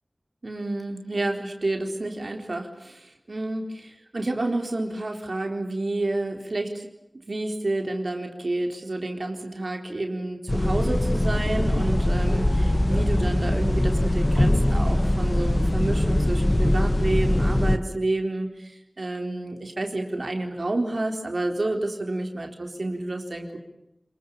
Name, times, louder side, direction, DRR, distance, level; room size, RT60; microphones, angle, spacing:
voice 1, 0.4-3.6 4.1-6.9 7.1-23.6, right 2 dB, 75° right, 3 dB, 4.0 m, -29 dB
sound 1, 10.5-17.8, left 1 dB, 35° left, 1.5 m, -22 dB
28.5 x 21.5 x 8.7 m, 0.89 s
wide cardioid pair, 50°, 0 cm